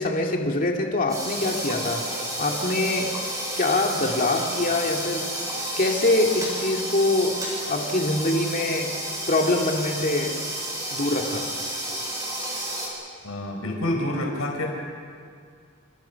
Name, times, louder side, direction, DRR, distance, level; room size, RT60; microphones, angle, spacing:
voice 1, 0.0-2.0 2.4-3.2 3.6-5.3 5.8-7.4 7.7-8.9 9.3-10.4 10.9-11.5, left 2 dB, 40° left, 2 dB, 2.3 m, -24 dB
sound 1, 1.1-12.9, right 1 dB, 20° right, 7.3 m, -31 dB
voice 2, 13.2-14.7, left 1 dB, 85° left, 1 dB, 4.4 m, -27 dB
28.0 x 27.5 x 5.8 m, 2.2 s
head